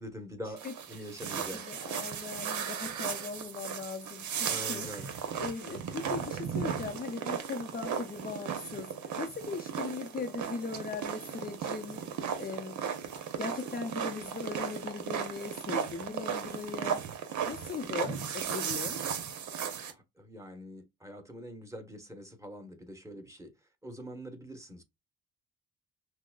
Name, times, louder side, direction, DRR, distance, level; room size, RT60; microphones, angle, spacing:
voice 1, 0.0-1.6 4.5-5.1 18.0-18.1 19.9-23.5 23.8-24.8, equal, 10° right, 1.2 m, -44 dB
voice 2, 0.6-1.0 1.3-12.0 12.4-12.9 13.4-17.0 17.5-19.0, left 5 dB, 30° left, 0.5 m, -39 dB
sound 1, 0.6-19.9, right 7 dB, 75° right, 0.9 m, -36 dB
5.8 x 2.1 x 2.3 m
cardioid pair, 90°, 30 cm